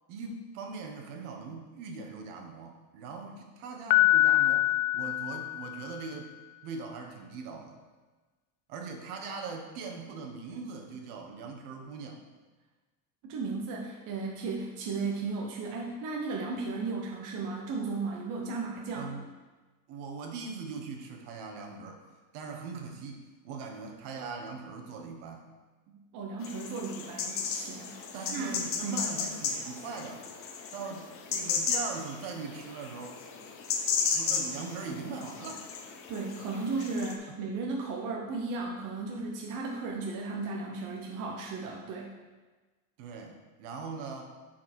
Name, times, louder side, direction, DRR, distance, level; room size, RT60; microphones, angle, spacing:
voice 1, 0.1-6.3 6.6-7.7 8.7-12.2 18.9-19.3 19.9-22.0 22.3-25.5 28.1-30.3 30.7-33.2 34.1-35.6 43.0-44.3, right 4 dB, 65° right, 2 dB, 1.4 m, -41 dB
Piano, 3.9-6.0, left 15 dB, 90° left, 0.6 m, -24 dB
voice 2, 13.2-19.1 26.1-28.0 28.3-28.5 28.8-29.0 36.1-42.1, right 3 dB, 45° right, -1 dB, 0.9 m, -35 dB
sound 1, 26.4-37.1, left 5 dB, 30° left, 0.7 m, -34 dB
11.0 x 4.7 x 4.4 m, 1.3 s
cardioid pair, 175°, 45 cm